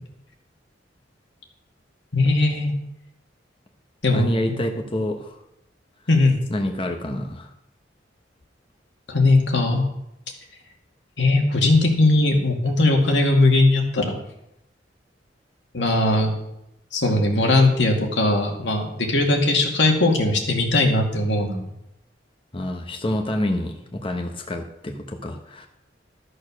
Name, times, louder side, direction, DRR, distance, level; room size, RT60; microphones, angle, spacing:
voice 1, 2.1-2.7 4.0-4.7 6.1-6.4 9.1-9.9 11.2-14.1 15.7-16.3 16.9-21.6, left 2 dB, 80° left, 2 dB, 2.2 m, -19 dB
voice 2, 4.1-5.3 6.5-7.5 22.5-25.7, left 1 dB, 30° left, 3 dB, 1.0 m, -27 dB
13.0 x 6.6 x 6.3 m, 0.84 s
head